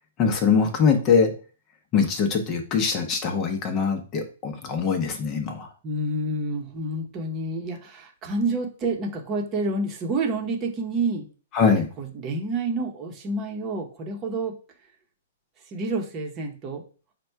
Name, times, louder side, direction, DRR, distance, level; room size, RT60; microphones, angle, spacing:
voice 1, 0.2-1.3 1.9-5.7 11.5-11.9, left 5 dB, 30° left, 4 dB, 0.8 m, -22 dB
voice 2, 5.8-11.3 12.0-14.6 15.7-16.8, right 2 dB, 30° right, 1 dB, 0.9 m, -28 dB
4.2 x 2.2 x 4.5 m, 0.37 s
hypercardioid pair, 120°, 0 cm